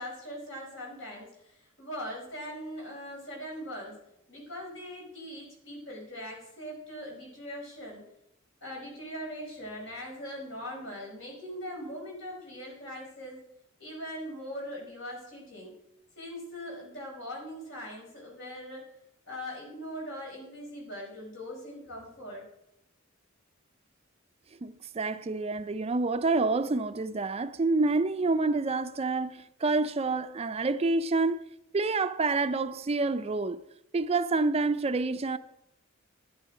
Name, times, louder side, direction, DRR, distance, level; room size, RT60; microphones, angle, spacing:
voice 1, 0.0-3.9 4.3-8.0 8.6-13.4 13.8-15.7 16.1-18.9 19.3-22.4, equal, 70° left, 5.0 m, -41 dB
voice 2, 24.6-31.4 31.7-33.6 33.9-35.4, right 3 dB, 30° right, 0.4 m, -28 dB
11.5 x 10.5 x 5.0 m
head